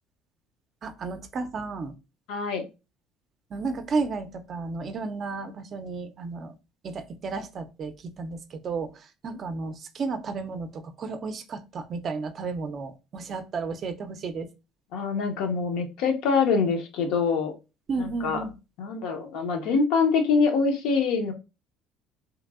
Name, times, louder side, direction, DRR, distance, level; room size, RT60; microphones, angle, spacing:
voice 1, 0.8-1.9 3.5-6.6 6.8-8.9 9.2-14.5 17.9-18.5, right 4 dB, 40° right, 0.4 m, -33 dB
voice 2, 2.3-2.6 14.9-17.5 18.0-18.4 18.8-21.3, left 5 dB, 75° left, 0.6 m, -24 dB
2.9 x 2.6 x 2.3 m
cardioid pair, 115°, 0 cm